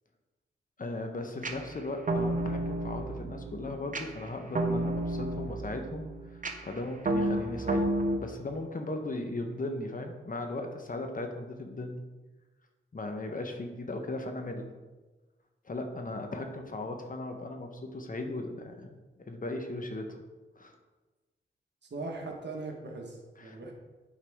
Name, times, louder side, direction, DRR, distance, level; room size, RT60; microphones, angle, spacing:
voice 1, 0.8-7.9 8.2-12.0 12.9-14.7 15.6-20.2 20.6-20.7 23.4-23.7, left 2 dB, 45° left, 4 dB, 1.1 m, -37 dB
sound 1, 1.4-8.2, right 1 dB, 40° right, 0.9 m, -31 dB
voice 2, 21.8-23.7, right 3 dB, 60° right, 1 dB, 1.5 m, -40 dB
8.4 x 4.7 x 3.6 m, 1.2 s
cardioid pair, 55°, 20 cm